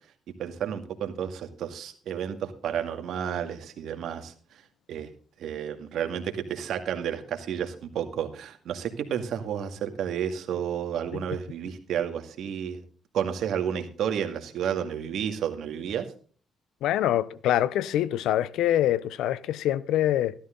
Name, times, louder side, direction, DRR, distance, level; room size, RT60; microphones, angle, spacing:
voice 1, 0.4-4.6 4.9-5.1 5.4-12.8 13.1-16.1, right 8 dB, 70° right, 2.0 m, -31 dB
voice 2, 16.8-20.3, left 12 dB, 85° left, 0.7 m, -25 dB
13.5 x 12.5 x 3.8 m
cardioid pair, 90°, 0 cm